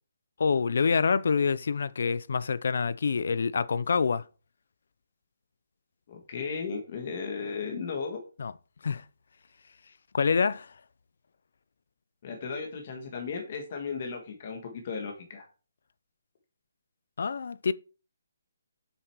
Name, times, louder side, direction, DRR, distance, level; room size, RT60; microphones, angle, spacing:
voice 1, 0.4-4.2 8.4-8.5 8.8-9.0 10.1-10.7 17.2-17.7, left 5 dB, 50° left, 0.5 m, -26 dB
voice 2, 6.1-8.2 12.2-15.5, left 5 dB, 30° left, 1.6 m, -35 dB
8.0 x 7.9 x 4.6 m
hypercardioid pair, 180°, 0 cm